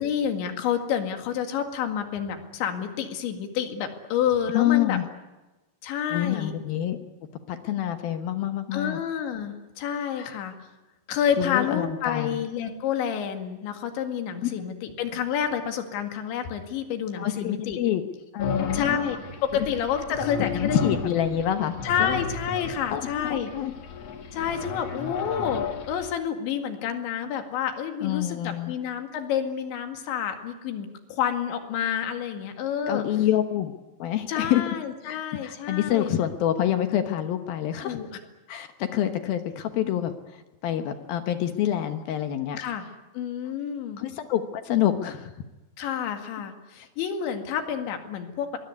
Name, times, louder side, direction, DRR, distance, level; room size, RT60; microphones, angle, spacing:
voice 1, 0.0-5.0 5.8-6.5 8.7-10.5 11.1-17.8 18.7-19.2 19.5-21.0 21.8-23.5 24.3-28.4 28.7-33.0 34.3-36.3 37.8-38.1 42.6-42.8 43.1-44.0 45.8-48.5, left 8 dB, 85° left, 6 dB, 4.4 m, -29 dB
voice 2, 4.5-5.1 6.1-7.0 7.5-9.0 10.2-10.4 11.4-12.4 14.4-14.5 17.2-18.0 18.3-19.0 20.5-22.2 22.9-23.7 28.0-28.8 32.9-33.7 34.0-34.6 35.1-38.0 38.5-42.6 44.0-45.3, left 11 dB, 70° left, 8 dB, 2.6 m, -27 dB
sound 1, 18.4-26.1, left 5 dB, 50° left, 2.0 m, -34 dB
23.5 x 20.5 x 9.5 m, 1.1 s
omnidirectional pair, 5.1 m